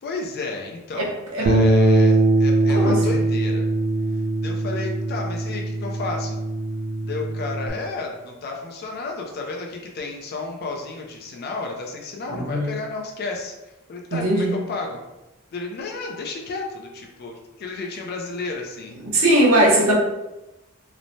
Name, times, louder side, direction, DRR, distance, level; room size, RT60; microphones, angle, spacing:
voice 1, 0.0-3.6 4.4-6.4 7.0-15.0 15.5-19.0, left 3 dB, 50° left, 1 dB, 0.4 m, -32 dB
voice 2, 1.0-1.5 2.8-3.0 12.3-12.7 14.1-14.6 19.0-19.9, right 1 dB, 85° right, -3 dB, 0.7 m, -19 dB
Bass guitar, 1.5-7.7, right 2 dB, 50° right, 0.5 m, -21 dB
3.0 x 2.1 x 2.6 m, 1.0 s
head